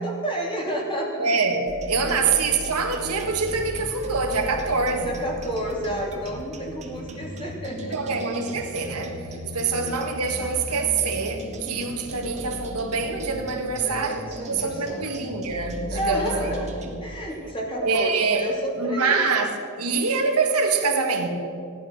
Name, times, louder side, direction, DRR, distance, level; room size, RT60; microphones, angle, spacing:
voice 1, 0.0-1.3 2.0-2.2 5.0-8.2 9.3-9.9 13.8-15.2 15.9-16.7 17.0-19.2, right 1 dB, 25° left, -2 dB, 3.2 m, -31 dB
voice 2, 1.2-5.1 7.9-9.3 9.5-14.2 14.5-16.5 17.8-18.5 18.8-19.5 19.8-21.3, right 4 dB, 85° right, 3 dB, 1.9 m, -25 dB
sound 1, 1.7-17.0, equal, 30° right, 2.2 m, -37 dB
17.0 x 11.5 x 6.2 m, 2.5 s
head